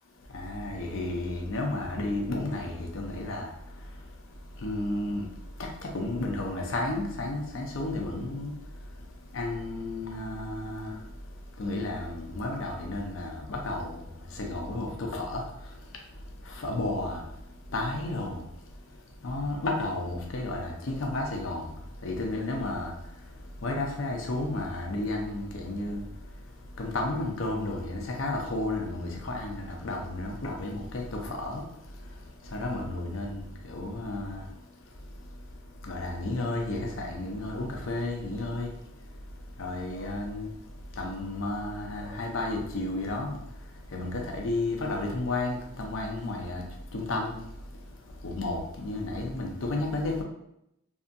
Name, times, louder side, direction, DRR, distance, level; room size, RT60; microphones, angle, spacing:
voice 1, 0.3-50.2, left 2 dB, 65° left, 1 dB, 0.6 m, -33 dB
2.7 x 2.5 x 2.5 m, 0.80 s
head